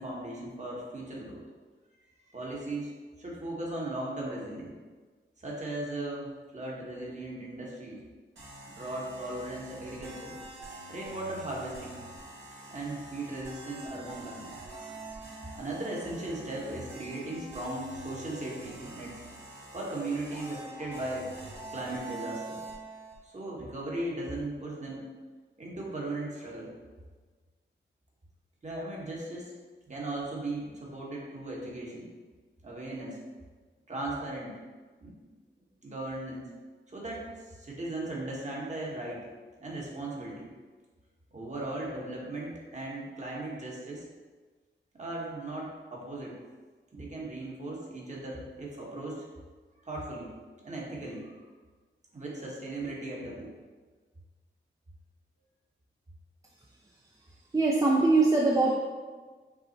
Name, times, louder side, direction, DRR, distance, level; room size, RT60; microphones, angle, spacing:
voice 1, 0.0-1.4 2.3-4.7 5.4-8.0 8.8-10.4 10.9-12.0 12.7-14.9 15.5-19.1 19.7-21.3 21.7-22.6 23.2-25.1 25.6-26.7 28.6-29.5 29.9-32.2 32.6-33.2 33.9-34.5 35.0-35.2 35.8-36.5 36.9-39.3 39.6-40.5 41.3-44.1 44.9-46.4 46.9-49.3 49.8-50.3 50.6-51.3 52.1-53.5, right 2 dB, 35° right, -4 dB, 1.2 m, -37 dB
sound 1, 8.3-23.2, right 2 dB, 80° right, 1.4 m, -45 dB
voice 2, 57.5-58.7, right 3 dB, 15° right, -3 dB, 0.5 m, -22 dB
6.0 x 2.1 x 4.0 m, 1.4 s
wide cardioid pair, 75°, 20 cm